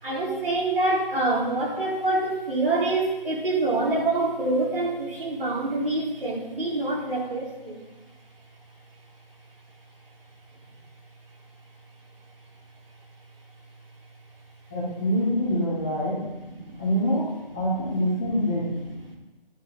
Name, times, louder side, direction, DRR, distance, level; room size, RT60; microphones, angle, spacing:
voice 1, 0.0-7.9 15.8-15.9 16.5-16.8 19.0-19.2, right 2 dB, 70° right, -3 dB, 4.2 m, -26 dB
voice 2, 14.7-16.2 16.8-18.7, equal, 5° left, -8 dB, 0.7 m, -25 dB
12.0 x 9.8 x 3.9 m, 1.1 s
figure-of-eight pair, 160°, 29 cm